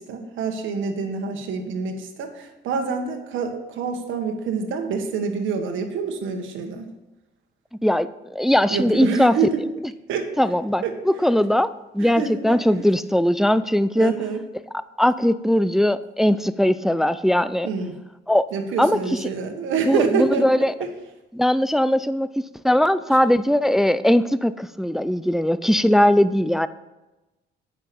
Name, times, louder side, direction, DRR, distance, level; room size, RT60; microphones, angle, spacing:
voice 1, 0.0-6.9 8.7-9.6 10.1-10.3 10.8-10.9 12.0-12.6 14.0-14.4 17.6-18.0 18.5-20.4, right 5 dB, 80° right, 4 dB, 1.5 m, -26 dB
voice 2, 7.8-9.4 10.4-14.1 14.7-17.7 18.3-18.5 18.8-19.3 19.9-20.7 21.3-22.3 22.6-26.7, left 1 dB, ahead, 14 dB, 0.4 m, -20 dB
8.9 x 5.8 x 6.8 m, 1.0 s
cardioid pair, 90°, 20 cm